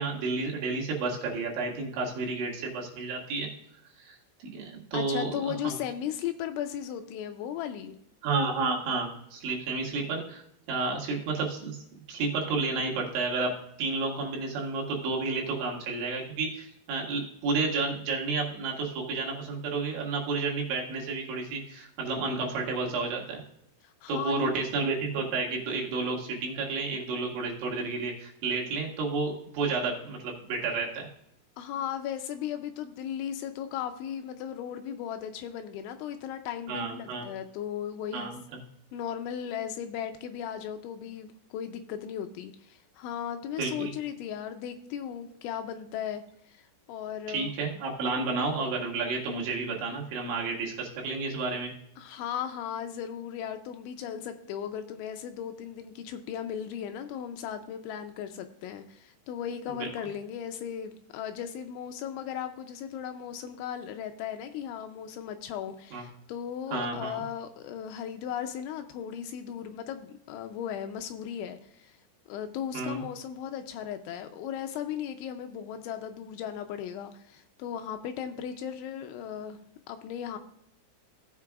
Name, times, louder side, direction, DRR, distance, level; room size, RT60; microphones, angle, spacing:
voice 1, 0.0-3.5 4.0-4.2 4.4-5.3 5.6-5.7 8.2-10.4 10.7-11.8 12.1-13.5 13.8-23.4 24.1-31.1 36.7-37.3 38.1-38.4 43.6-43.9 47.3-51.7 59.8-59.9 65.9-66.0 66.7-67.2 72.7-73.0, right 4 dB, 70° right, -2 dB, 4.1 m, -31 dB
voice 2, 4.9-8.0 23.8-24.6 31.6-38.3 38.9-47.5 52.0-71.9 72.3-79.6 79.9-80.4, left 9 dB, 85° left, 7 dB, 2.7 m, -36 dB
16.5 x 7.5 x 2.4 m, 0.76 s
omnidirectional pair, 5.9 m